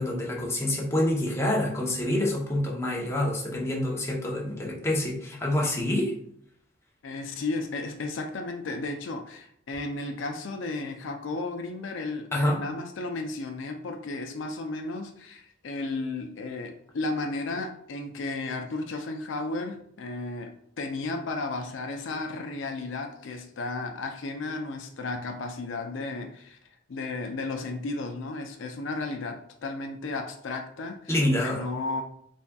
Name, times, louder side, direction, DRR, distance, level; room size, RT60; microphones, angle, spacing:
voice 1, 0.0-6.1 12.3-12.6 31.1-31.6, left 1 dB, 15° left, -3 dB, 0.7 m, -27 dB
voice 2, 7.0-26.6 26.9-32.0, left 3 dB, 75° left, 5 dB, 0.4 m, -34 dB
4.0 x 3.4 x 2.3 m, 0.67 s
head